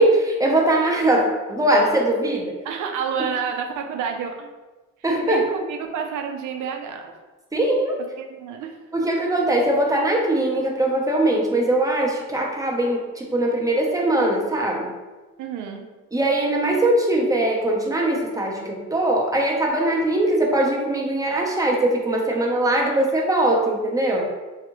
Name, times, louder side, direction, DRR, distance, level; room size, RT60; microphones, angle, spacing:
voice 1, 0.0-2.5 5.0-5.4 7.5-8.0 8.9-14.9 16.1-24.3, right 1 dB, 10° right, -1 dB, 0.7 m, -21 dB
voice 2, 2.6-4.5 5.2-7.1 8.2-8.8 15.4-15.9, right 6 dB, 80° right, 4 dB, 0.5 m, -29 dB
3.3 x 2.8 x 2.9 m, 1.2 s
cardioid pair, 90°, 30 cm